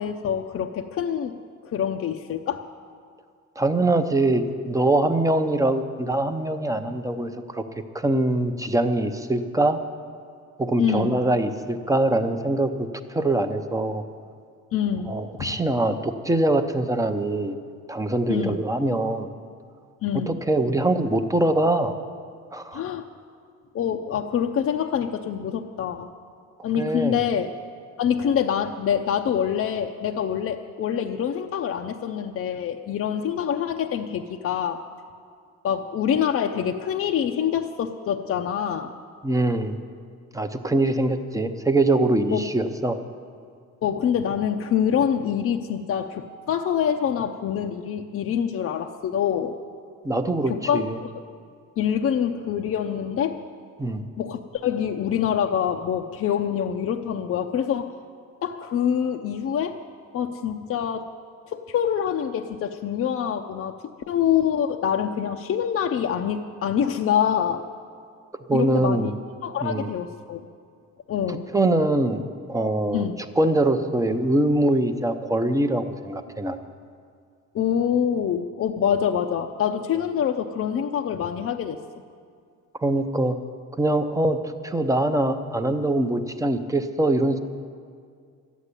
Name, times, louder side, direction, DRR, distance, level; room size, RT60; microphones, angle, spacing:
voice 1, 0.0-1.3 1.7-2.6 10.8-11.2 14.7-15.5 18.3-18.6 20.0-20.4 22.7-23.1 23.7-26.1 26.6-27.5 28.0-34.8 35.6-38.9 42.3-42.4 43.8-49.6 50.5-51.1 51.8-53.4 54.2-57.9 58.4-59.8 60.1-61.1 61.5-63.8 64.1-67.6 68.5-69.1 69.4-70.4 71.1-71.5 72.9-73.2 77.5-81.8, left 8 dB, 45° left, 4 dB, 0.6 m, -25 dB
voice 2, 3.6-7.6 7.9-9.8 10.6-14.0 15.1-17.6 17.9-19.3 20.1-21.9 22.5-22.8 26.7-27.2 39.2-39.8 40.3-43.0 50.0-51.0 53.8-54.0 68.5-69.1 69.6-69.9 71.3-72.2 72.5-73.1 73.4-76.6 82.8-83.4 83.8-87.4, right 2 dB, 10° right, 7 dB, 0.7 m, -23 dB
13.0 x 8.2 x 9.8 m, 2.2 s
cardioid pair, 120°, 32 cm